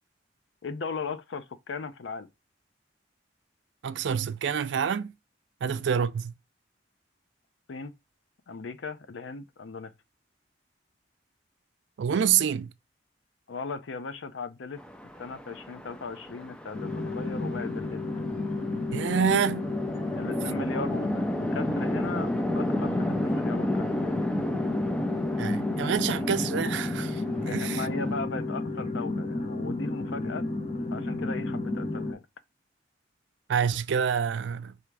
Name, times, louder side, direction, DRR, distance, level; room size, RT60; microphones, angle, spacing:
voice 1, 0.6-2.3 5.6-5.8 7.7-7.9 8.5-9.9 13.5-14.8 15.2-18.1 20.1-22.3 22.6-24.2 27.5-30.5 30.9-32.2, left 4 dB, 80° left, 0.5 m, -37 dB
voice 2, 3.8-5.1 5.6-6.3 12.0-12.7 18.9-19.7 25.4-27.9 33.5-34.7, right 7 dB, 70° right, 0.4 m, -27 dB
Chatter / Traffic noise roadway noise / Train, 14.8-28.2, left 1 dB, 5° left, 0.3 m, -33 dB
sound 1, 16.7-32.1, left 2 dB, 35° left, 0.7 m, -32 dB
3.5 x 2.8 x 4.6 m
head